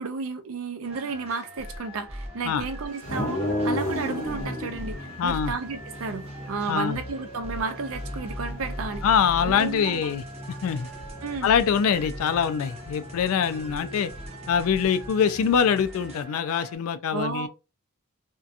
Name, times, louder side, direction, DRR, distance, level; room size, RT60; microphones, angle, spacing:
voice 1, 0.0-9.1 9.4-10.1 11.2-11.6 13.8-14.0 17.1-17.5, right 4 dB, 65° right, 0.5 m, -32 dB
sound 1, 0.8-16.2, equal, 30° right, 0.7 m, -41 dB
sound 2, 0.9-16.8, right 2 dB, 5° right, 0.9 m, -46 dB
sound 3, 3.0-15.8, left 1 dB, 35° left, 0.9 m, -36 dB
voice 2, 5.2-5.5 6.7-7.0 9.0-10.2 10.6-10.9 11.4-14.1 14.5-17.5, left 7 dB, 70° left, 0.3 m, -24 dB
2.7 x 2.2 x 2.4 m
head